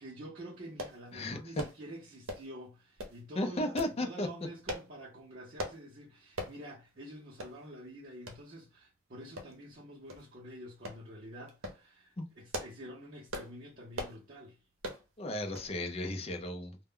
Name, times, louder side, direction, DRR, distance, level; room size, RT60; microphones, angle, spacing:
voice 1, 0.0-14.6, right 1 dB, 40° right, 0.6 m, -48 dB
sound 1, 0.8-1.0 1.6-1.8 2.3-2.5 3.0-3.2 3.8-4.0 4.7-4.9 5.6-5.8 6.4-6.6 6.9-7.0 7.4-7.5 8.3-8.4 9.4-9.7 10.1-10.2 10.8-11.0 11.5-11.8 12.3-12.8 13.3-13.5 13.9-14.2 14.8-15.0 15.5-15.7 16.0-16.1, equal, 80° right, 0.7 m, -40 dB
voice 2, 1.1-1.6 3.4-4.3 12.2-12.3 15.2-16.8, left 1 dB, 30° left, 0.5 m, -35 dB
2.1 x 2.1 x 3.6 m
head